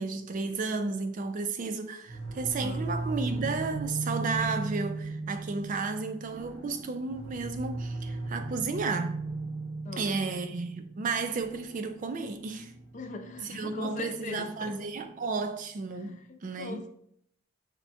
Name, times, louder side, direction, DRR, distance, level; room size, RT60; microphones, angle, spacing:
voice 1, 0.0-9.2 10.0-12.7 13.4-16.8, right 4 dB, 40° right, 0.3 m, -33 dB
sound 1, 2.1-14.8, right 2 dB, 80° right, 0.8 m, -37 dB
voice 2, 9.8-10.4 12.9-14.7 16.0-16.9, left 3 dB, 35° left, 0.4 m, -40 dB
6.0 x 2.1 x 2.7 m
head